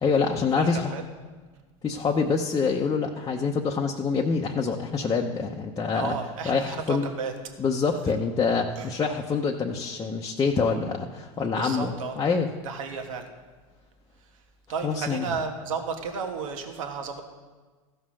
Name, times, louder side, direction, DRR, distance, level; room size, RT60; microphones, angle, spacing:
voice 1, 0.0-0.9 1.8-6.1 6.4-7.1 7.6-12.5 14.8-15.3, left 5 dB, 20° left, -1 dB, 0.8 m, -26 dB
voice 2, 0.6-1.0 1.8-2.1 5.9-7.3 8.8-8.9 11.4-12.2 12.6-13.3 14.7-17.2, right 5 dB, 85° right, 4 dB, 1.3 m, -33 dB
14.5 x 5.6 x 6.3 m, 1.4 s
supercardioid pair, 110°, 17 cm